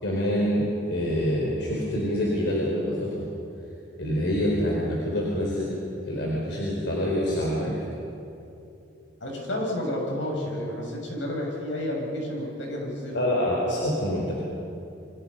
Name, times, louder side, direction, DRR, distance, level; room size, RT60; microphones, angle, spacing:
voice 1, 0.0-3.3 4.0-5.7 6.1-7.7 13.1-14.3, equal, 70° left, -4 dB, 4.6 m, -26 dB
voice 2, 9.2-13.4, left 1 dB, 85° left, -1 dB, 7.2 m, -31 dB
29.5 x 25.5 x 5.6 m, 2.8 s
head